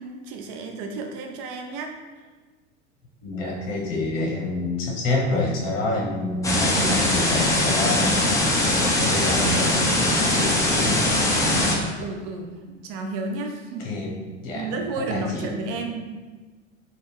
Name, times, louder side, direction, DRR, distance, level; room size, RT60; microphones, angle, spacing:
voice 1, 0.0-1.9 11.6-13.9 14.5-16.1, right 3 dB, 40° right, 4 dB, 0.6 m, -32 dB
voice 2, 3.2-8.4 8.7-11.0 13.8-14.1 14.4-15.5, left 2 dB, 50° left, -2 dB, 1.1 m, -28 dB
sound 1, 6.4-11.8, left 1 dB, 10° left, 0.5 m, -21 dB
4.0 x 2.5 x 3.4 m, 1.4 s
figure-of-eight pair, 80°, 36 cm